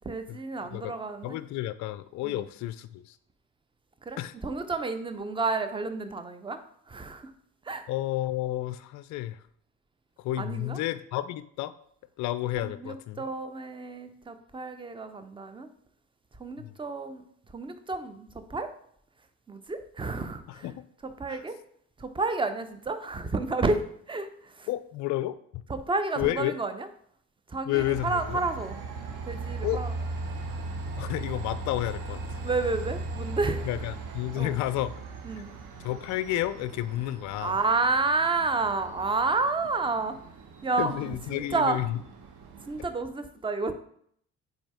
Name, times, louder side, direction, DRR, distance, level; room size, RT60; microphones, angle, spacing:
voice 1, 0.0-1.4 2.2-2.3 4.1-6.6 6.9-7.3 7.7-7.8 10.4-10.8 12.6-15.7 16.4-17.2 17.5-18.7 19.5-20.7 21.2-21.6 22.0-24.7 25.7-26.9 27.5-28.8 29.3-29.9 32.4-33.7 34.4-34.6 35.2-35.5 37.4-40.2 40.6-41.8 42.7-43.7, right 3 dB, 10° right, 10 dB, 0.6 m, -30 dB
voice 2, 1.2-3.2 4.2-4.3 7.9-9.4 10.2-11.7 12.2-13.3 16.6-16.7 20.5-20.8 21.3-21.5 24.7-25.6 26.2-26.5 27.6-28.4 29.6-29.8 31.0-32.2 33.6-34.9 35.8-37.5 40.8-42.0, left 14 dB, 40° left, 14 dB, 0.4 m, -31 dB
Train, 27.7-42.9, right 3 dB, 40° right, 1.0 m, -38 dB
8.6 x 2.9 x 4.4 m, 0.66 s
figure-of-eight pair, 45°, 48 cm